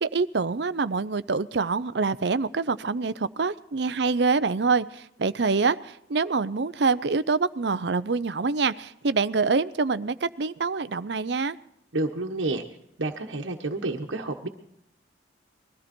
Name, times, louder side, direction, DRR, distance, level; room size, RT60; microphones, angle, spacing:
voice 1, 0.0-11.6, right 4 dB, 65° right, 15 dB, 0.6 m, -25 dB
voice 2, 11.9-12.6 13.0-14.5, right 2 dB, 85° right, 2 dB, 1.3 m, -29 dB
21.5 x 14.0 x 4.4 m, 0.75 s
head